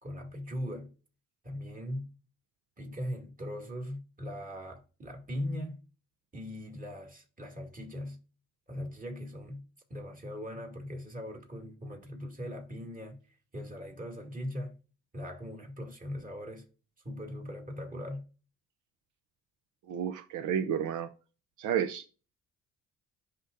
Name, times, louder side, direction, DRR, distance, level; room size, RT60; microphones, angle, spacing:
voice 1, 0.0-0.9 1.4-2.1 2.8-5.8 6.3-8.2 8.7-13.2 13.5-14.8 15.1-16.7 17.0-18.3, equal, 25° right, 2.4 m, -40 dB
voice 2, 19.9-21.1 21.6-22.0, right 8 dB, 80° right, 0.7 m, -31 dB
10.5 x 4.0 x 2.5 m
cardioid pair, 90°, 30 cm